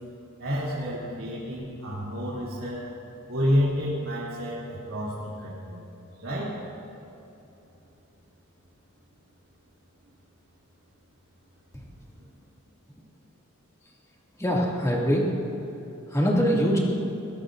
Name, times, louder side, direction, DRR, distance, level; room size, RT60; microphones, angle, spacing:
voice 1, 0.4-2.8 3.3-5.8 6.2-6.6, equal, 80° right, -8 dB, 2.8 m, -29 dB
voice 2, 14.4-15.3 16.1-16.8, equal, 15° left, -4 dB, 2.3 m, -23 dB
23.0 x 16.0 x 2.6 m, 3.0 s
head